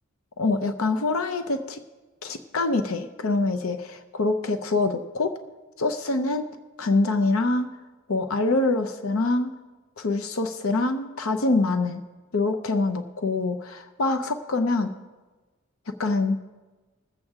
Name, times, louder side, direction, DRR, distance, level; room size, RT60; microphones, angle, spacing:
voice 1, 0.4-1.8 2.2-5.4 5.8-6.5 6.8-7.7 8.1-9.5 10.0-12.0 12.3-14.9 16.0-16.4, left 3 dB, 85° left, 7 dB, 0.7 m, -25 dB
21.0 x 8.0 x 3.6 m, 1.3 s
head